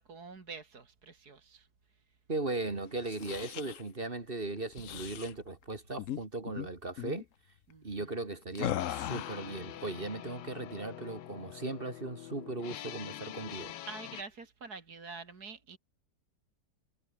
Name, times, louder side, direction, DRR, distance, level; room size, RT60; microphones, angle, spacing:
voice 1, 0.0-1.7 7.7-7.9 13.9-15.8, right 4 dB, 60° right, 3.2 m, -46 dB
voice 2, 2.3-7.3 7.8-13.7, right 2 dB, 30° right, 2.5 m, -38 dB
sound 1, 3.0-3.8 4.7-5.3 6.0-6.2 6.5-6.7 7.0-7.2 8.6-9.5, left 11 dB, 60° left, 0.9 m, -37 dB
sound 2, 4.8-7.4, right 3 dB, 80° right, 5.9 m, -59 dB
sound 3, 8.8-14.2, left 12 dB, 80° left, 1.5 m, -45 dB
omnidirectional pair, 1.9 m